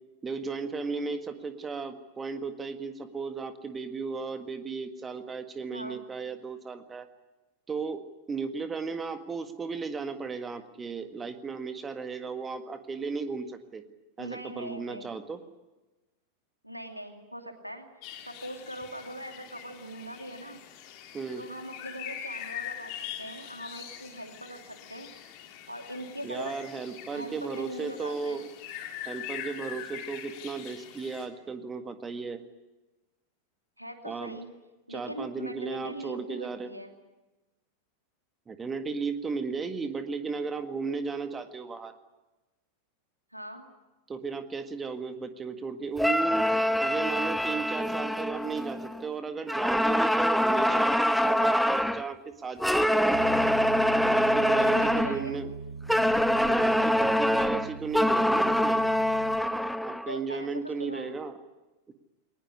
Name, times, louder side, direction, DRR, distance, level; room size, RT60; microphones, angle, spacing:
voice 1, 0.2-7.1 7.7-8.0 8.3-13.8 14.2-15.4 21.1-21.5 26.2-28.4 29.1-32.4 34.0-34.4 34.9-36.7 38.5-41.9 44.1-46.5 46.8-53.0 54.0-55.5 56.5-58.8 59.8-61.4 61.9-62.0, right 4 dB, 15° right, 9 dB, 1.7 m, -35 dB
voice 2, 14.2-15.1 16.6-17.9 18.3-20.6 21.4-22.9 23.2-25.1 25.7-26.5 27.1-28.5 33.8-34.5 34.9-36.9 43.3-43.7 51.4-51.6 54.4-55.4 60.1-61.1, right 1 dB, 90° right, 5 dB, 2.6 m, -41 dB
sound 1, 18.0-31.3, left 10 dB, 45° left, 3.0 m, -43 dB
sound 2, 46.0-49.1 49.5-52.1 52.6-55.2 55.9-60.1, equal, ahead, 0.8 m, -25 dB
Bass guitar, 53.1-59.4, right 5 dB, 40° right, 7.6 m, -41 dB
21.5 x 20.0 x 9.8 m, 1.1 s
figure-of-eight pair, 90°, 0 cm